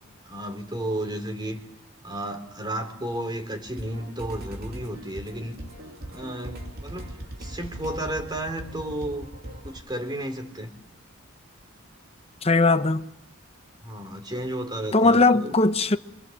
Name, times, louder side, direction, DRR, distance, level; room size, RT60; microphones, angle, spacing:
voice 1, 0.2-1.6 2.0-5.5 6.1-9.3 9.6-10.7 13.8-15.5, right 1 dB, 20° right, 3.7 m, -33 dB
sound 1, 3.7-9.8, right 1 dB, 50° right, 3.3 m, -40 dB
voice 2, 12.4-13.0 14.9-16.0, left 3 dB, 30° left, 1.0 m, -19 dB
27.0 x 25.5 x 7.3 m
head